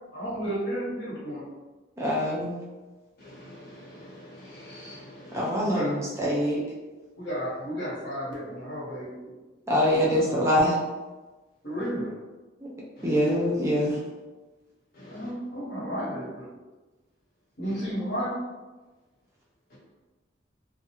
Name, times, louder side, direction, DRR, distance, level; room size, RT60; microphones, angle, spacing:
voice 1, 0.1-1.4 5.6-6.0 7.2-9.4 9.9-10.4 11.6-12.1 15.1-16.5 17.6-18.3, equal, 70° left, -6 dB, 1.0 m, -33 dB
voice 2, 2.0-2.5 5.3-6.6 9.7-10.7 13.0-13.9, equal, 15° right, -5 dB, 0.4 m, -24 dB
voice 3, 4.4-5.5 15.0-15.2, left 1 dB, 55° left, -4 dB, 0.7 m, -46 dB
2.4 x 2.0 x 2.8 m, 1.2 s
head